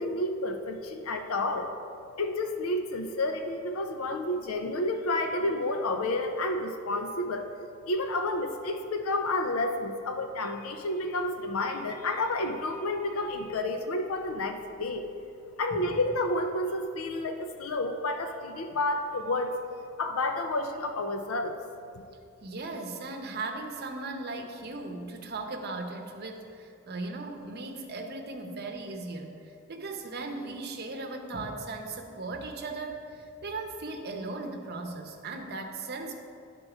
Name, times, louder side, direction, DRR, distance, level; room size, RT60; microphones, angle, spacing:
voice 1, 0.0-1.7 2.2-7.5 7.9-15.1 15.6-19.5 20.0-21.5, left 2 dB, 80° left, 5 dB, 0.5 m, -30 dB
voice 2, 22.4-29.3 29.7-36.1, right 3 dB, 50° right, 4 dB, 0.8 m, -37 dB
11.0 x 3.8 x 4.9 m, 2.5 s
head